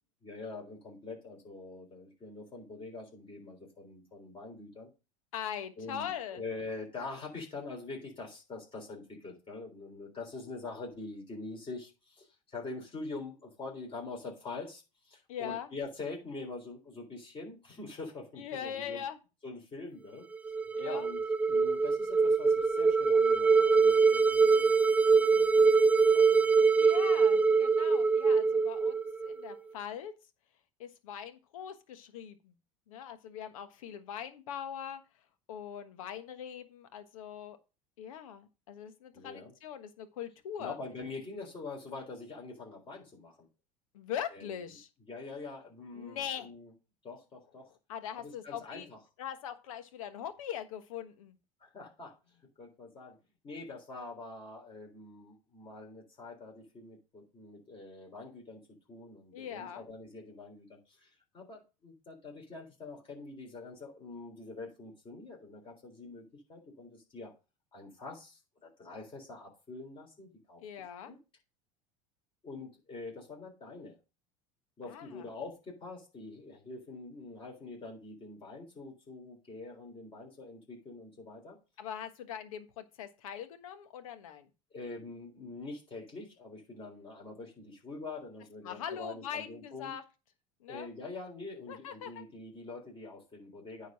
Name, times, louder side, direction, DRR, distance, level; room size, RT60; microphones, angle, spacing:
voice 1, 0.2-4.9 5.8-19.0 19.4-20.3 20.8-24.7 25.1-25.7 26.0-26.3 26.6-26.7 39.1-39.5 40.6-43.5 44.3-44.8 45.1-46.7 47.0-47.7 48.2-49.0 51.6-53.2 53.4-58.6 58.9-67.3 67.7-70.6 71.0-71.2 72.4-74.0 74.8-81.6 84.7-89.9 90.7-93.9, left 3 dB, 30° left, -1 dB, 3.7 m, -45 dB
voice 2, 5.3-6.4 15.3-15.7 18.4-19.2 20.7-21.1 26.7-30.1 30.8-32.5 32.9-35.0 35.5-37.6 38.0-40.8 43.9-44.9 46.0-46.5 47.9-48.9 49.2-51.4 59.3-59.8 70.6-71.1 74.9-75.2 81.8-84.5 88.6-90.0 90.6-90.9 91.7-92.2, left 9 dB, 85° left, 10 dB, 1.3 m, -41 dB
sound 1, 20.3-29.5, right 4 dB, 10° right, 0.6 m, -24 dB
9.2 x 3.9 x 6.4 m, 0.30 s
hypercardioid pair, 90°, 17 cm